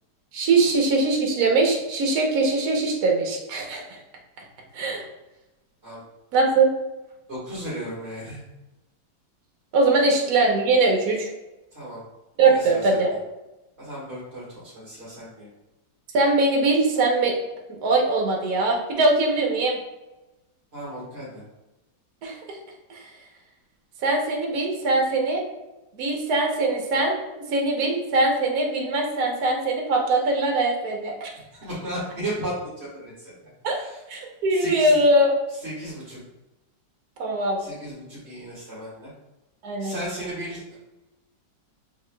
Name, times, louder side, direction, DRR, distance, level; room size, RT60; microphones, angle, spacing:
voice 1, 0.3-4.0 4.7-5.0 6.3-6.7 9.7-11.3 12.4-13.1 16.1-17.3 17.8-19.8 22.2-22.6 22.9-23.0 24.0-25.4 25.9-31.3 33.6-33.8 34.1-35.4 37.2-37.6 39.6-40.0, right 2 dB, 60° right, 0 dB, 1.3 m, -21 dB
voice 2, 7.3-8.4 11.7-12.0 12.4-13.0 13.8-15.5 20.7-21.4 31.5-33.3 33.8-34.0 34.5-35.0 35.6-36.2 37.6-39.1 39.8-40.7, right 1 dB, 35° right, -11 dB, 1.8 m, -35 dB
7.1 x 3.2 x 2.2 m, 1.0 s
omnidirectional pair, 1.9 m